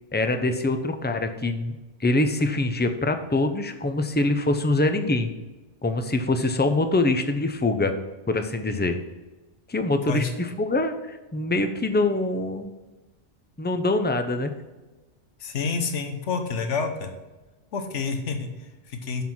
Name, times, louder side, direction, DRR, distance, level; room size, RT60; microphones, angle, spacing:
voice 1, 0.1-5.3 5.8-7.9 8.3-9.0 9.7-10.2 10.6-12.7 13.6-14.5, left 2 dB, 15° left, 7 dB, 0.4 m, -24 dB
voice 2, 15.4-17.1 17.7-19.2, left 4 dB, 85° left, 5 dB, 1.3 m, -28 dB
7.2 x 5.6 x 5.9 m, 1.1 s
omnidirectional pair, 1.2 m